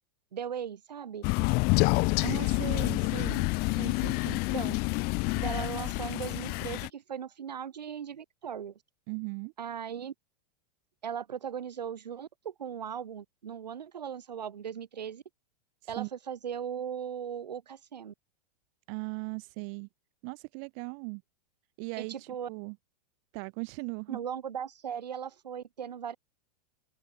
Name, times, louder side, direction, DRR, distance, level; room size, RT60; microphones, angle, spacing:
voice 1, 0.3-1.2 4.5-4.8 5.4-8.8 9.6-10.1 11.0-15.2 15.9-18.1 22.0-22.5 24.1-26.2, right 8 dB, 90° right, 4.1 m, -38 dB
Crow, 1.2-6.9, left 28 dB, 50° left, 2.0 m, -28 dB
voice 2, 2.2-4.4 9.1-9.5 16.0-16.1 18.9-19.9 20.2-21.2 21.8-22.8 23.3-24.2, right 40 dB or more, 55° right, 2.1 m, -38 dB
hypercardioid pair, 110°, 21 cm